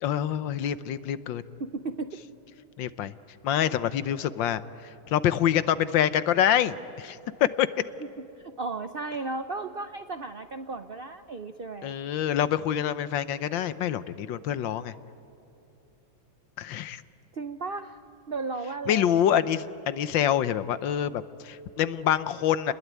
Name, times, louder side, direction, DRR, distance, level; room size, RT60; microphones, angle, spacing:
voice 1, 0.0-1.4 2.8-3.1 3.4-7.7 11.8-14.9 16.6-17.0 18.9-22.7, left 10 dB, 75° left, 14 dB, 1.5 m, -26 dB
voice 2, 1.6-2.2 8.4-11.9 17.3-18.0 18.3-19.1, right 3 dB, 75° right, 9 dB, 0.5 m, -34 dB
30.0 x 21.0 x 9.4 m, 2.9 s
omnidirectional pair, 2.1 m